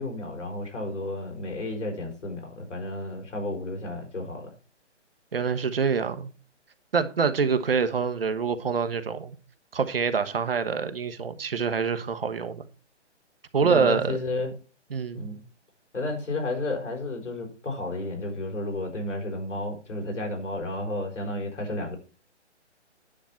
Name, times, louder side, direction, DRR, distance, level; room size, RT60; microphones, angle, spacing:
voice 1, 0.0-4.5 13.6-14.6 15.1-15.4 15.9-22.0, left 2 dB, 85° left, 5.1 m, -32 dB
voice 2, 5.3-6.3 6.9-9.3 9.7-12.6 13.5-14.2 14.9-15.3, right 5 dB, 50° right, 1.1 m, -26 dB
10.0 x 7.6 x 4.4 m
hypercardioid pair, 175°, 36 cm